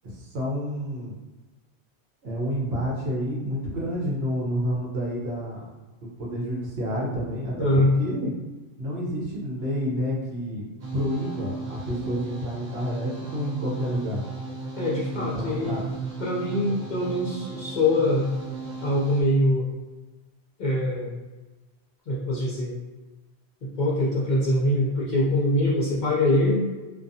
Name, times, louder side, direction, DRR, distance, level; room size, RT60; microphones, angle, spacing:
voice 1, 0.0-1.1 2.2-5.6 6.0-8.3 8.8-10.7 10.9-14.2 15.1-15.8, equal, 65° right, -4 dB, 1.0 m, -29 dB
voice 2, 7.6-7.9 14.8-15.8 16.2-18.3 18.8-19.7 20.6-21.1 22.1-22.7 23.6-26.7, left 1 dB, 55° left, -5 dB, 0.5 m, -23 dB
sound 1, 10.8-19.2, right 4 dB, 45° right, 0.6 m, -36 dB
2.4 x 2.3 x 2.6 m, 1.2 s
omnidirectional pair, 1.1 m